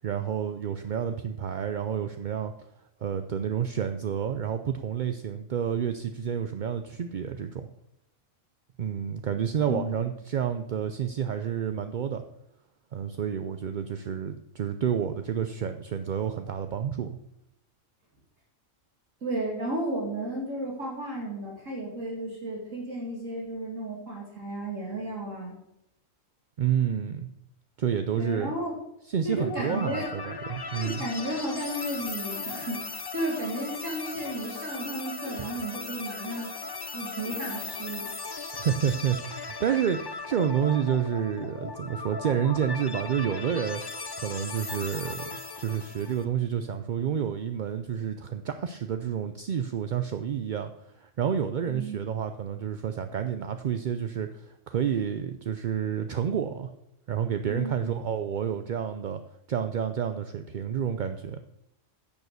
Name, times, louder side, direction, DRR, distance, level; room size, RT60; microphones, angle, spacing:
voice 1, 0.0-2.5 3.0-7.7 8.8-12.2 12.9-17.2 26.6-27.3 27.8-28.5 29.1-31.0 35.4-35.5 38.5-43.8 44.2-56.7 57.1-59.2 59.5-61.4, right 8 dB, 55° right, 8 dB, 0.5 m, -29 dB
voice 2, 9.7-10.0 19.2-25.6 28.1-28.8 29.2-30.1 30.7-36.5 36.9-38.1 51.7-52.0 57.5-57.9, right 1 dB, 75° right, -2 dB, 2.7 m, -33 dB
sound 1, 29.4-46.2, left 4 dB, 35° left, 0.4 m, -37 dB
10.5 x 6.9 x 6.7 m, 0.82 s
omnidirectional pair, 1.3 m